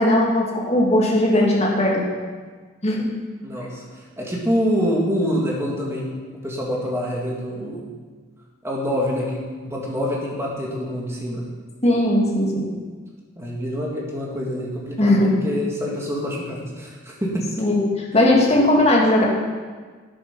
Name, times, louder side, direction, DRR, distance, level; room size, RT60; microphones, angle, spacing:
voice 1, 0.0-2.0 2.8-3.0 11.8-12.6 15.0-15.3 17.6-19.2, left 1 dB, 30° left, -2 dB, 2.2 m, -18 dB
voice 2, 3.4-6.0 6.4-7.9 8.6-11.5 13.4-17.4, equal, 10° right, -4 dB, 2.2 m, -26 dB
11.0 x 8.9 x 5.6 m, 1.5 s
head